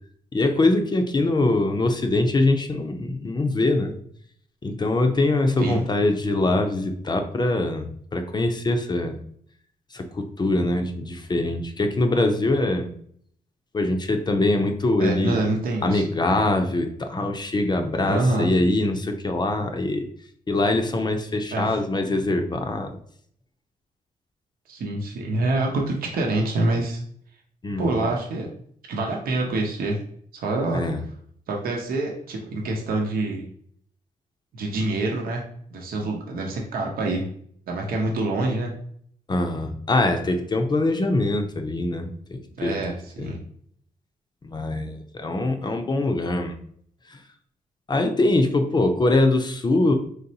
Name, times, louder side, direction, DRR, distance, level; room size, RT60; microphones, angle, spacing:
voice 1, 0.3-4.0 4.6-9.2 9.9-12.9 13.7-15.4 15.8-20.1 20.5-22.9 27.6-28.0 30.7-31.0 39.3-42.8 43.2-43.3 44.4-46.5 47.1-47.2 47.9-49.9, left 2 dB, 30° left, 5 dB, 0.5 m, -23 dB
voice 2, 15.0-16.0 18.1-18.5 21.5-21.8 24.7-27.0 27.8-28.5 28.9-30.0 30.3-30.9 31.5-33.5 34.5-35.4 35.7-37.3 37.7-38.7 42.5-43.4, right 2 dB, 80° right, 0 dB, 0.7 m, -26 dB
4.0 x 3.1 x 2.8 m, 0.63 s
cardioid pair, 90°, 15 cm